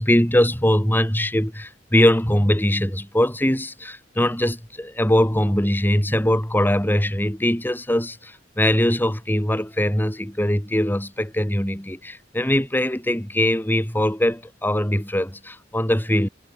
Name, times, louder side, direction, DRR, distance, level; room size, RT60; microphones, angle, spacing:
voice 1, 0.0-16.3, left 1 dB, 10° left, 3.4 m, -21 dB
head